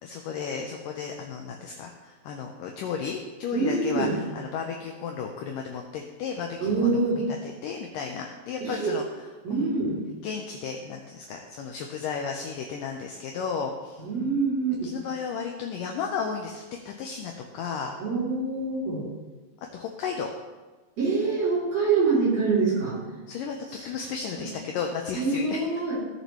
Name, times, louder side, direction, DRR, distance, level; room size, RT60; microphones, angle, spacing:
voice 1, 0.0-7.0 7.4-9.0 9.5-9.7 10.2-14.0 14.8-18.0 19.7-20.3 23.3-25.6, left 6 dB, 85° left, 2 dB, 1.9 m, -34 dB
voice 2, 3.5-4.2 6.6-7.2 8.6-8.9 9.4-10.0 14.0-15.0 18.0-19.1 21.0-23.0 23.7-23.9 25.1-25.9, right 4 dB, 40° right, -7 dB, 3.8 m, -25 dB
16.5 x 6.7 x 3.1 m, 1.2 s
omnidirectional pair, 4.8 m